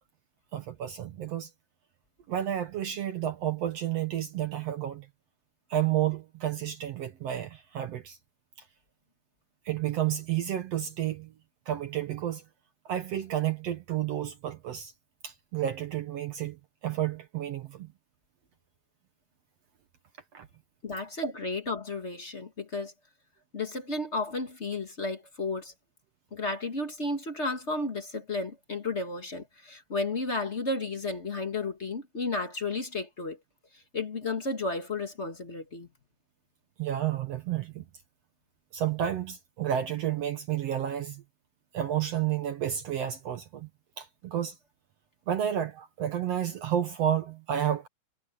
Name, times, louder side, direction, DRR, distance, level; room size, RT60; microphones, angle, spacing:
voice 1, 0.5-1.5 2.3-5.1 5.7-8.2 9.7-11.3 11.7-12.4 12.9-14.9 15.2-16.6 16.8-17.9 20.3-20.5 21.2-21.3 36.8-37.8 38.7-41.2 41.7-43.7 44.0-44.6 45.3-47.9, right 10 dB, 60° right, 2.0 m, -31 dB
voice 2, 20.8-22.9 23.5-25.7 26.3-33.4 33.7-35.9, left 3 dB, 30° left, 1.4 m, -33 dB
omnidirectional pair, 3.4 m